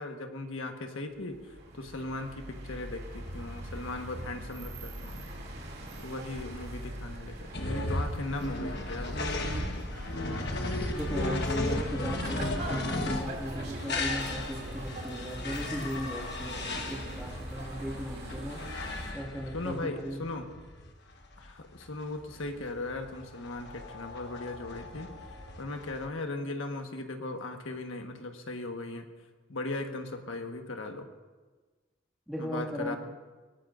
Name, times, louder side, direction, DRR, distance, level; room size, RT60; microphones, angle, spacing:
voice 1, 0.0-5.3 6.0-9.9 19.5-20.5 21.4-25.1 25.6-29.1 29.5-31.1 32.4-33.0, left 2 dB, 80° left, 4 dB, 1.4 m, -38 dB
sound 1, 1.1-19.1, right 1 dB, 50° right, 2.8 m, -42 dB
sound 2, 7.5-26.1, left 2 dB, 55° left, 1.3 m, -35 dB
voice 2, 10.9-18.6 19.1-20.2 32.3-33.0, equal, ahead, -5 dB, 2.1 m, -37 dB
22.5 x 17.5 x 2.6 m, 1.3 s
head